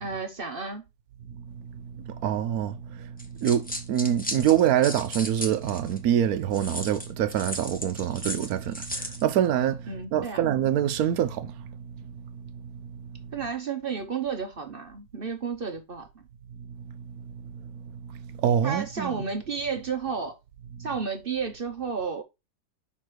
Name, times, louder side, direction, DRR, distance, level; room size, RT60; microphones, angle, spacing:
voice 1, 0.0-0.9 9.9-10.5 13.3-16.2 18.6-20.4 20.8-22.2, right 5 dB, 45° right, 0.7 m, -32 dB
voice 2, 2.0-3.1 3.4-11.5 18.3-19.2, right 10 dB, 70° right, 1.0 m, -25 dB
sound 1, 3.2-6.0 6.5-9.2, equal, 5° left, 0.7 m, -35 dB
6.1 x 4.1 x 4.6 m
omnidirectional pair, 2.0 m